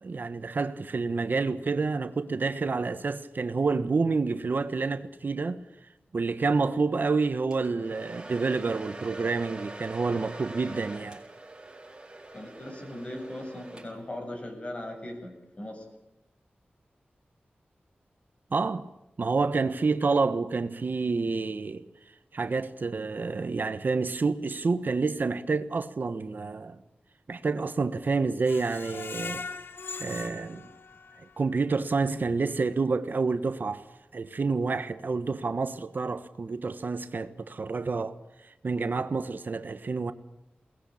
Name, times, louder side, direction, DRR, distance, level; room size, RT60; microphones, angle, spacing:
voice 1, 0.0-5.6 6.1-11.2 18.5-18.9 19.2-21.8 22.3-26.8 27.3-29.4 30.0-30.7 31.2-33.8 34.1-38.2 38.6-40.1, right 4 dB, 60° right, 1.2 m, -28 dB
Domestic sounds home sounds, 7.5-14.2, right 2 dB, 25° right, 5.5 m, -43 dB
voice 2, 12.3-15.8, left 1 dB, 35° left, 7.5 m, -39 dB
Screech, 28.5-31.4 31.9-32.0 32.4-32.5, left 4 dB, 90° left, 1.2 m, -40 dB
22.0 x 19.0 x 8.7 m
wide cardioid pair, 90°, 4 cm